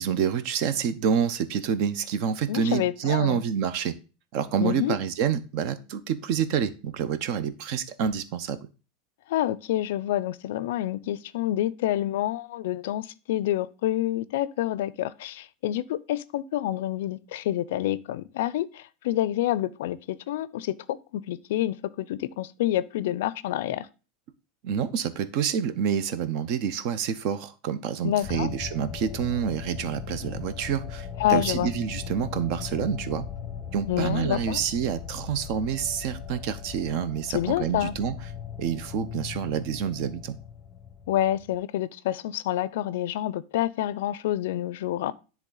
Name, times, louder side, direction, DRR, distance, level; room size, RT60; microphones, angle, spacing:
voice 1, 0.0-3.9 4.3-8.6 24.6-33.3 33.7-38.1 38.6-40.4, right 8 dB, 45° right, 0.6 m, -28 dB
voice 2, 2.5-3.4 4.6-5.0 9.3-23.9 28.0-28.5 31.2-31.7 33.9-34.6 37.3-37.9 41.1-45.1, left 13 dB, 75° left, 0.4 m, -28 dB
sound 1, 28.2-41.5, left 7 dB, 15° left, 0.6 m, -38 dB
10.0 x 3.5 x 3.9 m
supercardioid pair, 170°, 0 cm